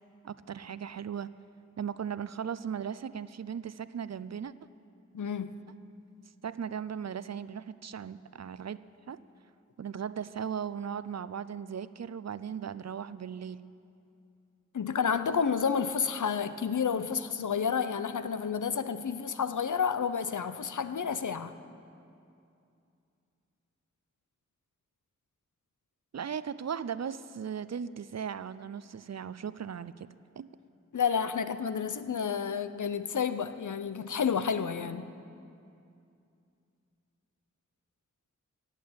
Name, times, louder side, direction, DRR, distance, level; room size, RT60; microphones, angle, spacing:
voice 1, 0.2-1.3 1.8-4.5 6.4-8.8 9.1-9.2 9.8-13.7 26.1-30.1 30.4-30.5, right 7 dB, 65° right, 16 dB, 0.4 m, -37 dB
voice 2, 5.1-5.6 14.7-21.5 30.9-35.1, left 6 dB, 90° left, 11 dB, 0.6 m, -30 dB
16.0 x 8.4 x 8.7 m, 2.5 s
wide cardioid pair, 60°, 29 cm